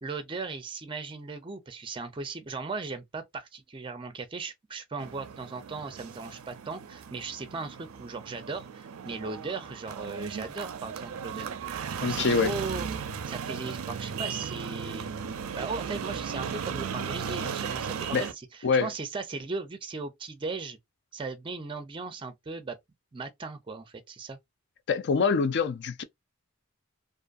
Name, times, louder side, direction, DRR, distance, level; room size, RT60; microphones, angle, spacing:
voice 1, 0.0-11.5 12.0-12.9 13.3-15.1 15.5-20.8 21.1-22.8 23.1-24.4, right 4 dB, 25° right, 0.4 m, -37 dB
sound 1, 5.0-18.3, right 7 dB, 85° right, 0.4 m, -36 dB
voice 2, 12.0-12.6 18.1-18.2 18.6-18.9 24.9-26.0, left 5 dB, 55° left, 0.4 m, -25 dB
2.5 x 2.5 x 2.4 m
head